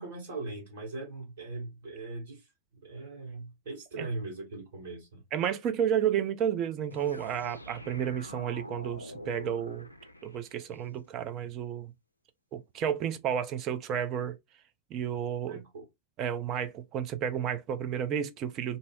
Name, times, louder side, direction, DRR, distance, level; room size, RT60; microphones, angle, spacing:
voice 1, 0.0-2.5 2.8-5.2 15.5-15.8, right 2 dB, 60° right, 1.6 m, -40 dB
voice 2, 5.3-9.9 10.2-11.9 12.5-14.4 14.9-15.6 16.2-18.8, right 9 dB, 35° right, 0.4 m, -31 dB
sound 1, 6.9-10.8, left 1 dB, 85° left, 0.3 m, -45 dB
2.7 x 2.0 x 3.6 m
figure-of-eight pair, 90°, 0 cm